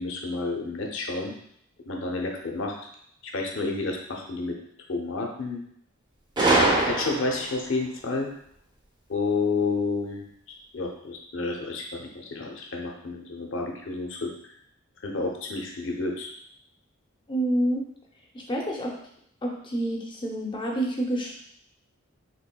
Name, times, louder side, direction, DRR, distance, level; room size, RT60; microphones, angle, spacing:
voice 1, 0.0-1.3 1.9-2.8 3.2-4.6 4.9-5.6 6.6-8.3 9.1-10.3 10.7-14.3 15.0-16.3, left 3 dB, 60° left, 1 dB, 0.7 m, -30 dB
Gunshot gunfire, 6.4-7.6, right 2 dB, 20° right, 0.5 m, -22 dB
voice 2, 17.3-17.8 18.3-18.9 19.4-21.3, right 1 dB, 20° left, -1 dB, 0.6 m, -28 dB
4.5 x 3.1 x 2.2 m, 0.68 s
head